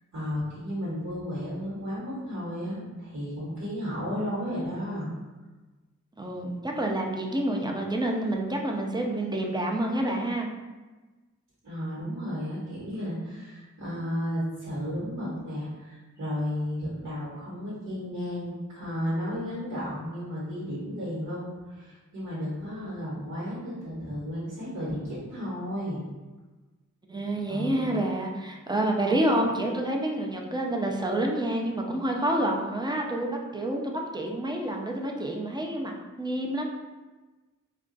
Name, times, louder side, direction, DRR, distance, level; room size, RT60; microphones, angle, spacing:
voice 1, 0.1-5.1 11.6-26.0 27.5-27.9, equal, 60° right, -9 dB, 1.2 m, -33 dB
voice 2, 6.2-10.5 27.1-36.7, right 1 dB, 15° right, 1 dB, 0.4 m, -28 dB
2.4 x 2.3 x 3.8 m, 1.2 s
wide cardioid pair, 60°, 32 cm